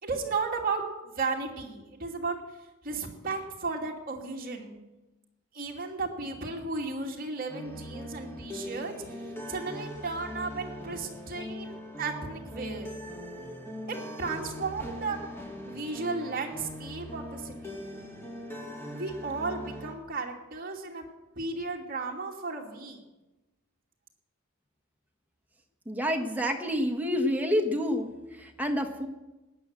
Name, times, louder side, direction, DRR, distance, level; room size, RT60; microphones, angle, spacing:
voice 1, 0.0-2.4 2.8-4.8 5.5-9.2 9.5-12.9 13.9-15.2 15.7-17.7 18.9-21.0 21.4-23.0, right 4 dB, 45° right, 0 dB, 2.7 m, -34 dB
sound 1, 7.5-19.9, left 1 dB, 10° left, 2.5 m, -41 dB
voice 2, 25.8-29.1, equal, 10° right, 3 dB, 1.6 m, -28 dB
19.5 x 9.4 x 7.6 m, 1.0 s
head